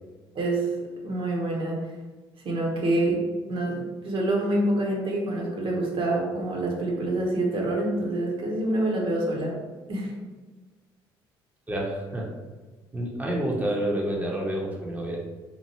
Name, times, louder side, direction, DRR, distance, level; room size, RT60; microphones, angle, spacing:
voice 1, 0.3-0.7 1.0-1.8 2.4-3.2 3.5-9.6 9.9-10.1, right 1 dB, 45° right, -1 dB, 0.8 m, -26 dB
voice 2, 11.7-12.3 12.9-15.2, right 1 dB, 15° right, -2 dB, 0.7 m, -28 dB
2.8 x 2.5 x 2.9 m, 1.3 s
hypercardioid pair, 55°, 12 cm